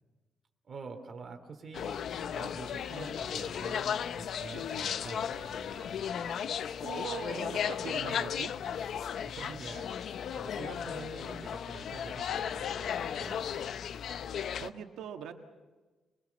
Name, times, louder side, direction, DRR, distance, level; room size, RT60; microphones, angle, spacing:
voice 1, 0.7-2.0 2.3-6.0 9.2-9.9 10.3-13.7, right 4 dB, 35° right, 3 dB, 3.1 m, -46 dB
sound 1, 1.7-14.7, left 8 dB, 55° left, 0.7 m, -35 dB
voice 2, 6.8-8.5 14.6-15.3, right 8 dB, 90° right, 4 dB, 1.7 m, -41 dB
24.0 x 22.5 x 7.1 m, 1.2 s
cardioid pair, 170°, 0 cm